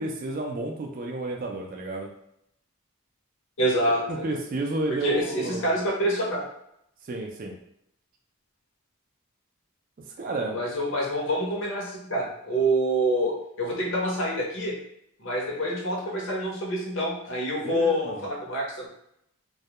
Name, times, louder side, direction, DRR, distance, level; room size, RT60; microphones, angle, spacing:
voice 1, 0.0-2.1 4.1-5.7 7.0-7.6 10.2-10.6 17.6-18.2, right 2 dB, 40° right, 1 dB, 0.3 m, -31 dB
voice 2, 3.6-4.4 4.9-6.4 10.5-14.7 15.2-18.9, right 1 dB, 60° left, -3 dB, 0.7 m, -27 dB
2.2 x 2.1 x 2.8 m, 0.77 s
head